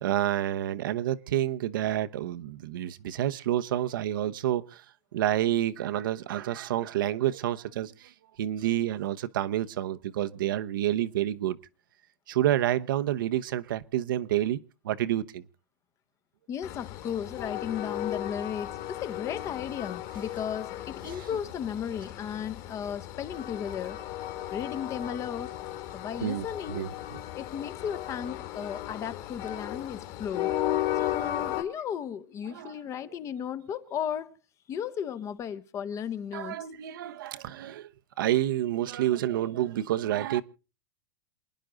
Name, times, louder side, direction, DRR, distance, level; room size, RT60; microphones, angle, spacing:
voice 1, 0.0-4.6 5.1-7.9 8.4-11.6 12.3-14.6 14.8-15.4 21.0-21.2 26.2-26.9 32.5-32.7 36.3-37.9 38.2-40.4, right 12 dB, 70° right, 1.0 m, -28 dB
voice 2, 16.5-24.0 24.5-25.6 25.9-26.9 27.3-30.5 31.0-34.4 34.7-36.6, left 8 dB, 25° left, 0.9 m, -35 dB
Train, 16.6-31.6, left 13 dB, 50° left, 2.6 m, -35 dB
28.0 x 10.0 x 3.9 m
hypercardioid pair, 140°, 11 cm